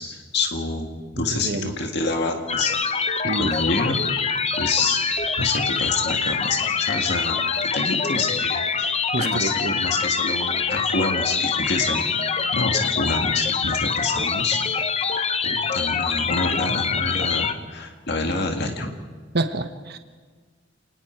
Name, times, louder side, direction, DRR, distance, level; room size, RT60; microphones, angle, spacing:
voice 1, 0.0-2.7 3.3-4.0 4.6-5.0 5.4-12.0 12.5-14.9 15.4-18.9, left 3 dB, 60° left, 3 dB, 1.9 m, -27 dB
voice 2, 1.2-1.7 3.2-3.5 9.1-9.8 19.3-20.0, right 2 dB, 55° right, 8 dB, 1.0 m, -27 dB
sound 1, 2.5-17.5, left 5 dB, 35° left, 1.0 m, -25 dB
29.5 x 19.0 x 4.6 m, 1.5 s
head